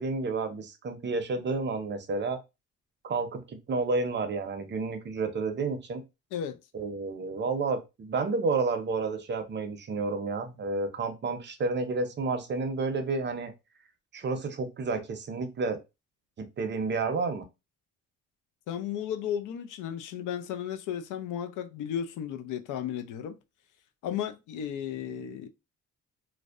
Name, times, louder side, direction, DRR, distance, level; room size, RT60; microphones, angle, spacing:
voice 1, 0.0-2.4 3.0-6.0 6.7-13.5 14.1-15.8 16.4-17.4, right 3 dB, 35° right, 0.6 m, -30 dB
voice 2, 18.7-23.3 24.0-25.5, left 9 dB, 85° left, 0.5 m, -34 dB
2.6 x 2.0 x 2.4 m
cardioid pair, 90°, 30 cm